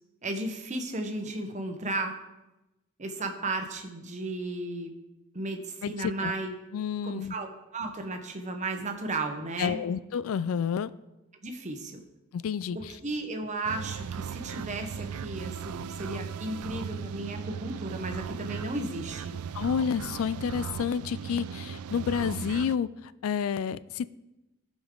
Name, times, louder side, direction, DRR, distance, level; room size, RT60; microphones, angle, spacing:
voice 1, 0.2-2.1 3.0-4.9 5.3-6.6 7.0-9.8 11.4-12.0 12.7-19.3, right 2 dB, 35° right, 4 dB, 1.0 m, -34 dB
voice 2, 5.8-6.3 6.7-7.3 9.6-10.9 12.3-12.8 19.5-24.1, left 7 dB, 70° left, 17 dB, 0.3 m, -30 dB
sound 1, 13.6-22.8, right 7 dB, 80° right, 0.4 m, -37 dB
15.0 x 5.3 x 3.8 m, 0.98 s
head